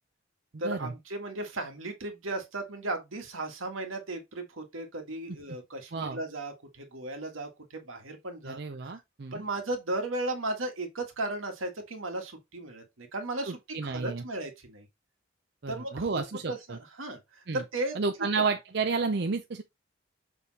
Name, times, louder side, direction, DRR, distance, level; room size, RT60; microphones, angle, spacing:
voice 1, 0.6-8.6 8.9-9.0 9.3-14.9 15.7-18.0 18.3-18.5, right 2 dB, 90° right, 1.8 m, -36 dB
voice 2, 8.4-9.4 13.5-14.2 15.6-16.8 17.5-17.6 18.0-19.6, right 4 dB, 55° right, 0.5 m, -31 dB
7.0 x 3.5 x 4.1 m
head